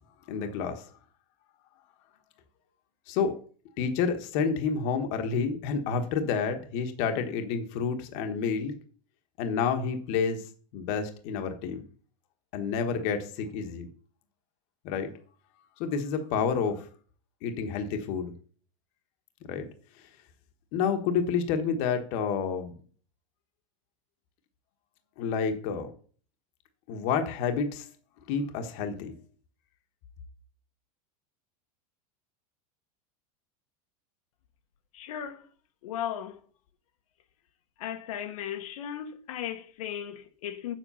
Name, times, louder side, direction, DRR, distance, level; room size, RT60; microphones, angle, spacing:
voice 1, 0.3-0.8 3.1-3.3 3.8-8.7 9.4-10.4 10.7-11.8 12.5-13.9 14.8-15.1 15.8-16.9 17.4-18.3 19.5-19.7 20.7-22.7 25.2-25.9 26.9-27.9 28.3-29.1, left 6 dB, 40° left, 1.3 m, -29 dB
voice 2, 34.9-35.5 35.8-36.4 37.8-40.7, left 10 dB, 85° left, 1.4 m, -36 dB
8.1 x 7.5 x 5.6 m
supercardioid pair, 175°, 18 cm